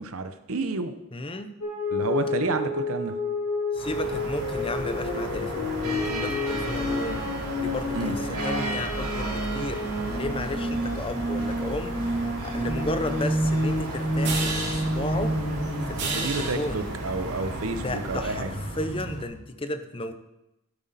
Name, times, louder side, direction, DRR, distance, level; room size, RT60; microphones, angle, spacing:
voice 1, 0.0-0.9 1.9-3.2 7.9-8.2 16.0-18.5, right 3 dB, 70° right, 9 dB, 0.8 m, -30 dB
voice 2, 1.1-1.5 3.7-12.0 12.4-15.4 15.9-16.8 17.7-20.1, left 2 dB, 25° left, 9 dB, 0.7 m, -34 dB
sound 1, 1.6-16.5, left 1 dB, 80° left, 4.6 m, -29 dB
sound 2, 3.7-19.2, right 1 dB, 90° right, 2.8 m, -34 dB
sound 3, 14.1-19.2, right 3 dB, 50° right, 2.7 m, -35 dB
13.0 x 8.1 x 4.1 m, 0.93 s
head